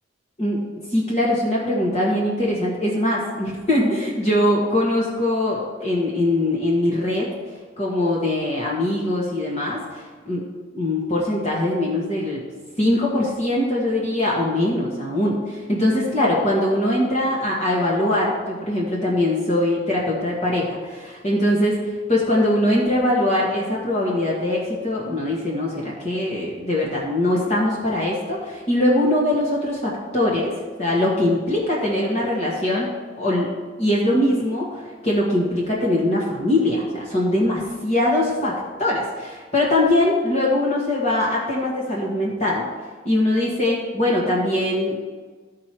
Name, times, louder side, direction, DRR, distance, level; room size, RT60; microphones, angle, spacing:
voice 1, 0.9-7.3 7.8-10.4 10.7-12.4 12.8-21.8 22.1-30.5 30.8-32.9 33.2-33.5 33.8-42.7 43.1-45.0, left 1 dB, 35° left, -4 dB, 1.6 m, -22 dB
13.0 x 4.8 x 4.5 m, 1.4 s
head